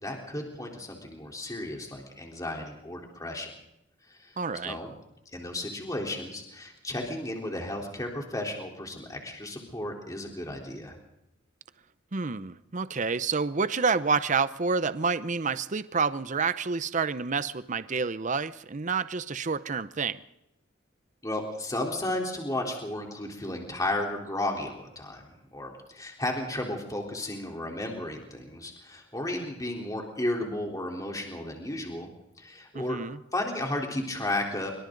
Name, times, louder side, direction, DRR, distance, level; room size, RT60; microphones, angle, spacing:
voice 1, 0.0-3.5 4.1-4.9 5.3-11.0 21.2-32.1 32.4-33.0 33.3-34.7, left 1 dB, 15° left, 3.9 m, -34 dB
voice 2, 4.4-4.8 12.1-20.2 32.7-33.2, right 5 dB, 40° right, 0.7 m, -28 dB
26.0 x 25.0 x 4.0 m
head